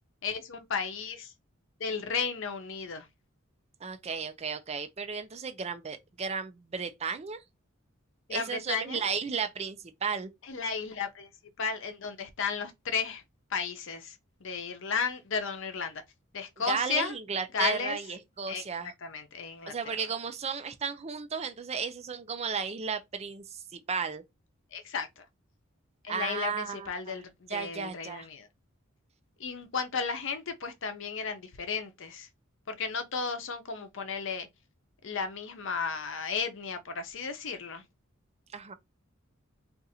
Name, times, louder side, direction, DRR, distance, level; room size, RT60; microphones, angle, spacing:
voice 1, 0.2-1.3 1.8-3.1 8.3-9.0 10.4-11.3 11.6-13.2 13.5-14.2 14.4-16.0 16.3-17.2 17.5-18.0 18.5-20.0 24.7-25.2 26.0-28.5 29.4-32.3 32.7-34.5 35.0-37.8, left 5 dB, 65° left, 0.7 m, -34 dB
voice 2, 3.8-7.4 8.3-10.3 16.7-18.9 19.7-24.2 26.1-27.2 27.5-28.3 38.5-38.7, right 6 dB, 30° right, 0.5 m, -34 dB
2.5 x 2.5 x 4.1 m
head